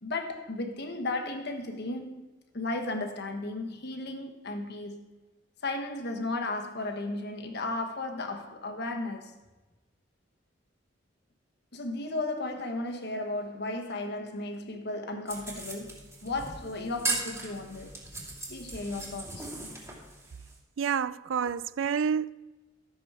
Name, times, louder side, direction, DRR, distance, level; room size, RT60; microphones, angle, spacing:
voice 1, 0.0-2.3 2.5-5.1 5.6-9.4 11.7-17.9 18.5-19.5, left 2 dB, 60° left, 1.3 m, -35 dB
sound 1, 15.3-20.6, right 3 dB, 15° right, 2.7 m, -38 dB
voice 2, 20.8-22.3, right 7 dB, 85° right, 0.4 m, -28 dB
13.5 x 7.2 x 4.9 m
head